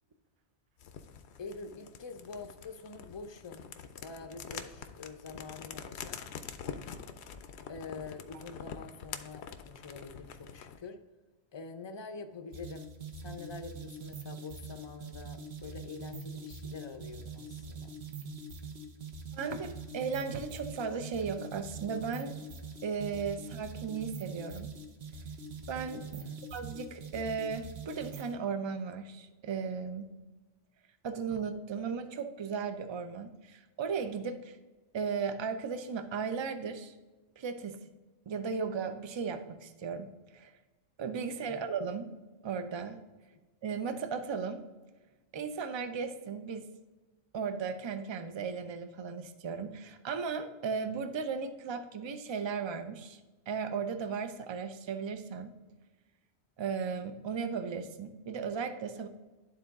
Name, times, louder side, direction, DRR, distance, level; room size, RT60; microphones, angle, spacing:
sound 1, 0.8-10.8, left 7 dB, 70° left, 0.8 m, -45 dB
voice 1, 1.4-3.7 4.0-6.2 6.7-6.9 7.7-11.0 11.5-12.9 13.2-17.9 26.1-26.5 41.5-41.6, left 4 dB, 35° left, 6 dB, 0.4 m, -46 dB
sound 2, 12.5-28.4, right 3 dB, 65° right, 1.0 m, -44 dB
voice 2, 19.3-22.3 22.8-24.7 25.7-26.2 26.5-30.1 31.0-34.6 34.9-36.9 37.4-37.8 38.3-40.5 41.0-42.1 42.4-43.0 43.6-44.6 45.3-46.7 47.3-53.2 53.5-55.6 56.6-59.1, right 5 dB, 45° right, 8 dB, 0.3 m, -36 dB
11.5 x 3.9 x 3.6 m, 1.2 s
omnidirectional pair, 1.2 m